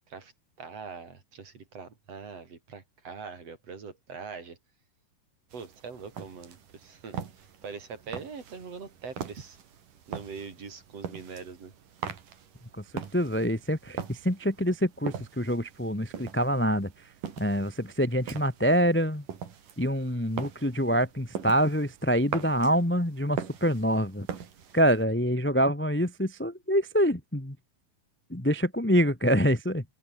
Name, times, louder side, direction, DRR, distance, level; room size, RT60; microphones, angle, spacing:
voice 1, 0.6-4.6 5.5-9.6 10.1-11.7, right 5 dB, 45° right, 4.5 m, -42 dB
sound 1, 5.5-25.0, right 8 dB, 70° right, 4.4 m, -42 dB
voice 2, 12.8-16.9 17.4-19.2 19.8-24.3 24.7-27.5 28.3-29.8, equal, 10° left, 0.8 m, -26 dB
open air
omnidirectional pair, 3.9 m